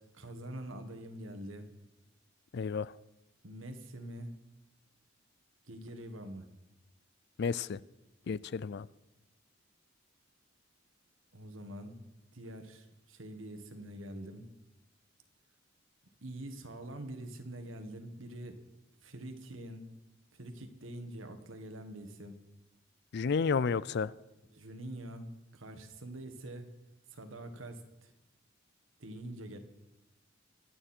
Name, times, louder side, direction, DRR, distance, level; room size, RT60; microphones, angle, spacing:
voice 1, 0.1-1.7 3.4-4.4 5.7-6.5 11.3-12.0 12.3-14.5 16.2-18.6 19.0-19.9 20.3-22.4 24.5-26.7 27.1-28.1 29.0-29.6, right 1 dB, 85° right, 7 dB, 1.7 m, -45 dB
voice 2, 2.5-2.9 7.4-7.8 8.3-8.9 23.1-24.1, left 5 dB, 55° left, 19 dB, 0.4 m, -31 dB
24.5 x 9.3 x 4.4 m, 1.0 s
head